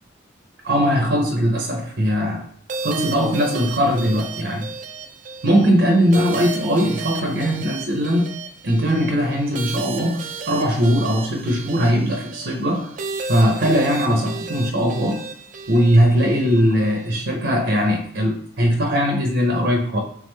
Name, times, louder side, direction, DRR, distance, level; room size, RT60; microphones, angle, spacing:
voice 1, 0.6-2.4 2.8-4.7 5.4-8.3 8.6-12.9 13.3-15.2 15.7-20.0, equal, 60° right, 1 dB, 0.7 m, -20 dB
sound 1, 2.7-17.2, right 5 dB, 40° right, 0.3 m, -34 dB
3.5 x 3.4 x 3.2 m, 0.63 s
head